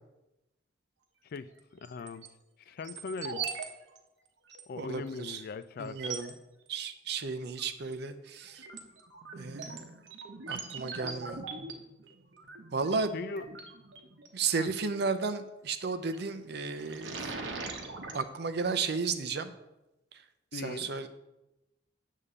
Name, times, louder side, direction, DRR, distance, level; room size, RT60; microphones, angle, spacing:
voice 1, 1.3-2.3 2.7-3.5 4.7-6.0 13.1-13.5 14.6-14.7 20.5-20.9, left 4 dB, 55° left, 14 dB, 0.4 m, -40 dB
sound 1, 1.8-2.3 2.8-3.7 3.9-4.0 4.5-4.6 5.3-5.4 5.9-6.3 7.6-7.9 8.4-14.3 15.9-16.2 16.6-18.2, right 4 dB, 85° right, 1.0 m, -41 dB
voice 2, 4.8-5.4 5.8-6.3 6.7-8.6 9.3-10.0 10.5-11.4 12.7-13.1 14.3-17.2 18.1-19.5 20.5-21.1, right 4 dB, 65° right, 9 dB, 0.6 m, -33 dB
8.1 x 3.7 x 6.7 m, 0.95 s
head